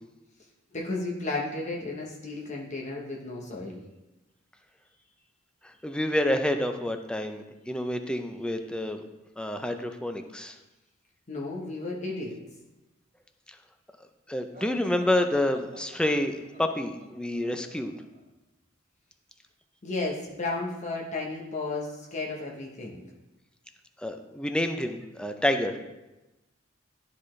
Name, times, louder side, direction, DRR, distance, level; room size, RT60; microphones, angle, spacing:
voice 1, 0.7-3.8 11.3-12.4 19.8-23.0, left 2 dB, 35° left, -2 dB, 1.0 m, -33 dB
voice 2, 5.6-9.0 9.4-10.6 14.3-17.9 24.0-25.8, left 1 dB, 5° left, 6 dB, 0.5 m, -28 dB
sound 1, 14.5-18.2, right 2 dB, 40° right, 1.9 m, -49 dB
12.0 x 4.0 x 3.2 m, 1.0 s
head